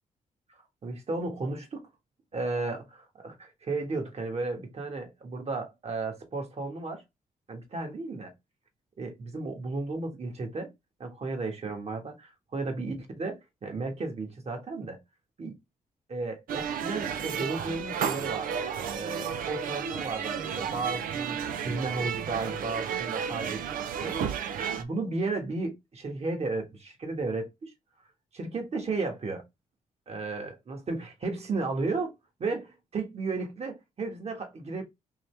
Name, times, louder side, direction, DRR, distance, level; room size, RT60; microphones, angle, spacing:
voice 1, 0.8-1.8 2.3-7.0 7.5-8.3 9.0-10.7 11.0-15.0 15.4-15.6 16.1-27.7 28.3-29.4 30.1-32.1 32.4-34.8, right 3 dB, 45° right, 1.5 m, -34 dB
sound 1, 16.5-24.8, right 7 dB, 80° right, 0.5 m, -32 dB
3.9 x 2.8 x 3.3 m
cardioid pair, 75°, 14 cm